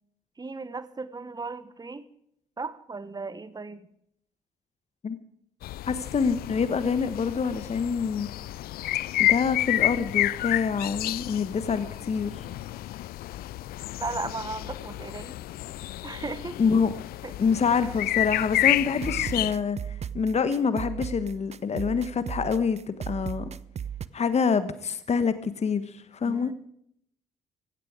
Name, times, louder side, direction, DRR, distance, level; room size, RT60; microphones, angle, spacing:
voice 1, 0.4-2.0 2.6-3.8 14.0-15.3 16.0-16.6 17.2-17.3 17.7-17.9 26.2-26.5, right 3 dB, 20° right, 14 dB, 1.3 m, -36 dB
sound 1, 5.6-19.5, left 15 dB, 60° left, 0.5 m, -30 dB
voice 2, 5.9-8.3 9.2-12.5 16.6-16.9 17.4-19.8 20.1-23.5 24.1-26.5, left 5 dB, 40° left, 13 dB, 1.3 m, -26 dB
sound 2, 18.5-24.1, right 8 dB, 40° right, 0.7 m, -37 dB
16.5 x 15.0 x 5.0 m, 0.71 s
hypercardioid pair, 45°, 18 cm